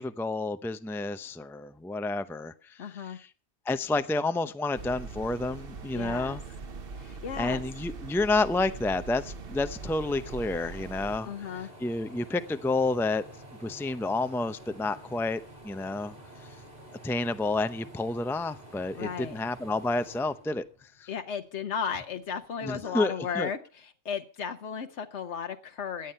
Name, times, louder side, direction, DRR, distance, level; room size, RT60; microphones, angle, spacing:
voice 1, 0.0-3.3 3.7-6.4 7.4-13.2 13.6-16.1 17.0-21.1 22.6-23.5, left 2 dB, ahead, 11 dB, 0.6 m, -30 dB
voice 2, 2.8-3.2 5.9-6.4 7.0-7.6 11.2-11.7 18.9-19.4 21.1-26.1, left 7 dB, 85° left, 7 dB, 1.3 m, -35 dB
sound 1, 4.7-11.2, right 4 dB, 55° right, 1.3 m, -41 dB
sound 2, 8.6-21.2 21.6-22.7, right 1 dB, 35° right, 4.8 m, -50 dB
17.5 x 10.5 x 5.6 m, 0.36 s
omnidirectional pair, 1.1 m